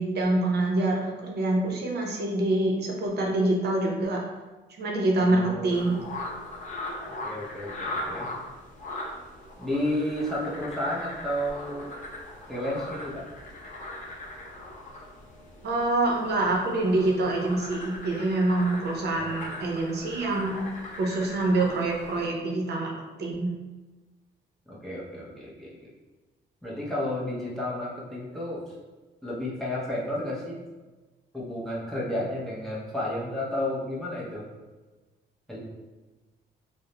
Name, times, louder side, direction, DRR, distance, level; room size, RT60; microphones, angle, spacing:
voice 1, 0.0-4.2 4.8-6.0 15.6-20.7 21.0-22.9 23.2-23.5, right 2 dB, 55° right, 0 dB, 0.6 m, -26 dB
voice 2, 5.2-6.0 7.1-8.3 9.6-11.9 12.5-13.2 19.2-19.4 24.7-25.8 26.6-28.6 29.2-30.6 31.3-34.5 35.5-35.6, left 1 dB, ahead, -6 dB, 0.7 m, -32 dB
sound 1, 5.7-22.3, left 1 dB, 40° left, 0.6 m, -40 dB
2.3 x 2.0 x 2.9 m, 1.2 s
cardioid pair, 90°, 20 cm